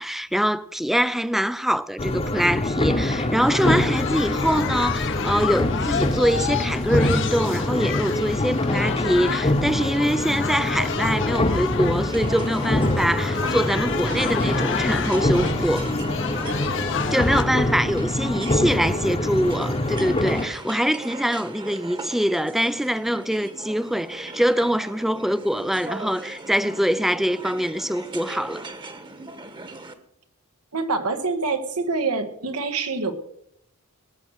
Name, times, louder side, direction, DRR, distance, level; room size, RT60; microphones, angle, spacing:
voice 1, 0.0-15.9 17.1-28.6, equal, ahead, 0.4 m, -24 dB
sound 1, 2.0-20.5, left 1 dB, 25° left, 1.0 m, -24 dB
sound 2, 3.4-17.4, left 7 dB, 60° left, 0.9 m, -31 dB
sound 3, 12.1-29.9, right 2 dB, 20° right, 1.2 m, -38 dB
voice 2, 18.2-19.1 30.7-33.1, right 4 dB, 85° right, 1.7 m, -27 dB
19.5 x 6.6 x 6.5 m
head